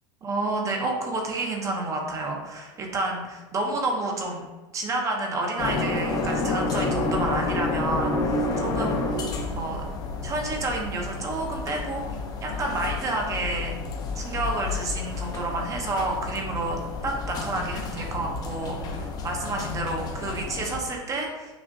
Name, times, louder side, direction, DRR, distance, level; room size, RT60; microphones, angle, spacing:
voice 1, 0.2-4.5 4.7-9.2 9.5-9.8 10.2-12.0 12.4-13.8 14.1-21.6, right 2 dB, 25° right, 1 dB, 0.6 m, -30 dB
sound 1, 5.6-20.8, left 3 dB, 30° left, 0.5 m, -30 dB
6.0 x 2.1 x 2.6 m, 1.2 s
supercardioid pair, 130°, 13 cm